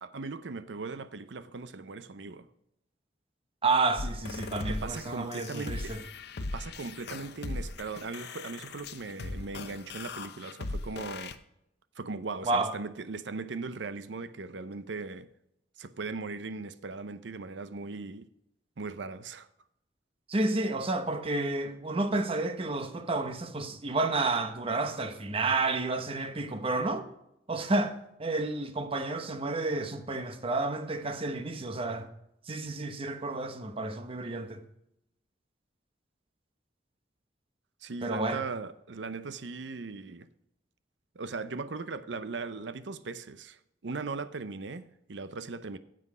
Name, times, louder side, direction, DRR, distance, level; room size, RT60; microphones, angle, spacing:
voice 1, 0.0-2.5 4.7-6.0 6.4-11.3 12.0-15.3 15.8-18.3 18.8-19.5 37.8-40.3 41.1-45.8, right 4 dB, 85° right, 0.7 m, -39 dB
voice 2, 3.6-6.0 12.4-12.7 20.3-27.0 27.5-32.1 32.5-34.6 38.0-38.4, right 2 dB, 30° right, 1.0 m, -30 dB
sound 1, 4.0-11.3, left 3 dB, 65° left, 0.7 m, -39 dB
9.6 x 7.8 x 4.9 m
head